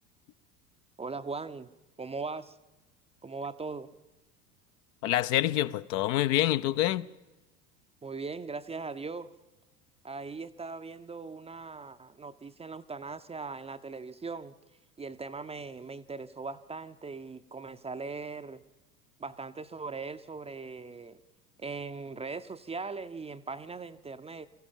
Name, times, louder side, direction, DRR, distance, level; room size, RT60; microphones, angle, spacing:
voice 1, 1.0-1.7 2.0-2.6 3.2-3.9 8.0-9.3 10.0-14.5 15.0-18.6 19.2-21.2 21.6-24.5, right 4 dB, 15° right, 0.7 m, -39 dB
voice 2, 5.0-7.1, left 14 dB, 50° left, 0.7 m, -26 dB
24.0 x 15.0 x 7.4 m
figure-of-eight pair, 80°, 48 cm